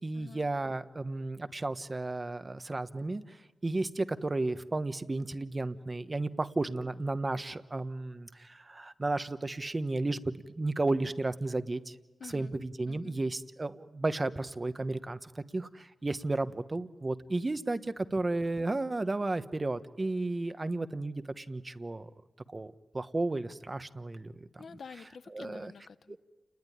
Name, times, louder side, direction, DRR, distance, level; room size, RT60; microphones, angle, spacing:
voice 1, 0.0-3.4 3.6-11.9 12.2-22.1 22.5-24.3 25.3-25.7 26.1-26.2, right 2 dB, 30° right, 11 dB, 1.1 m, -33 dB
voice 2, 12.2-12.5 12.9-13.2 24.6-26.2, left 6 dB, 70° left, 14 dB, 0.8 m, -48 dB
29.0 x 20.5 x 10.0 m, 1.2 s
cardioid pair, 80°, 0 cm